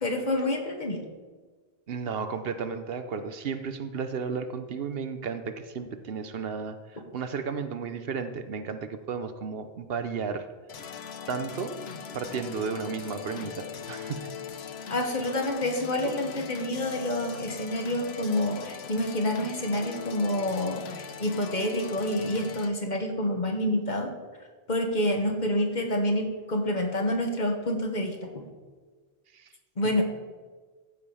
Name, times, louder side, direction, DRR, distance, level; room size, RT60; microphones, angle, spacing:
voice 1, 0.0-1.0 14.9-24.1 24.7-28.4 29.8-30.0, left 1 dB, 45° left, 3 dB, 1.4 m, -28 dB
voice 2, 1.9-10.4 11.3-11.7 12.1-14.3 29.3-29.5 29.8-30.0, right 5 dB, 70° right, 9 dB, 0.9 m, -33 dB
sound 1, 10.7-22.7, left 7 dB, 85° left, 1.0 m, -40 dB
14.0 x 5.1 x 5.6 m, 1.4 s
omnidirectional pair, 1.1 m